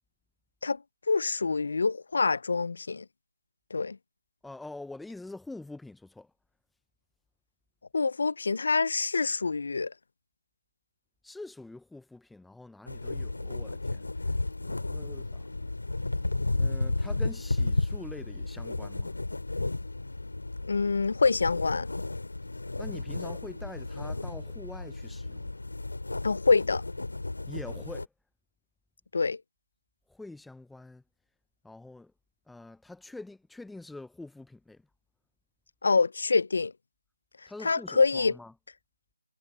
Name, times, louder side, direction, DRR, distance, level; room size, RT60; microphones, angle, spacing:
voice 1, 0.6-3.1 3.7-4.0 7.9-9.9 20.6-21.9 26.2-26.8 29.1-29.4 35.8-36.7 37.6-38.4, left 4 dB, 55° left, 0.5 m, -26 dB
voice 2, 4.4-6.3 11.2-14.1 14.6-15.7 16.5-19.2 22.8-25.5 27.5-28.1 30.1-31.0 31.6-32.1 32.5-34.9 37.5-38.5, left 2 dB, ahead, 0.5 m, -45 dB
sound 1, 12.9-28.1, left 2 dB, 90° left, 2.7 m, -33 dB
figure-of-eight pair, 170°, 0 cm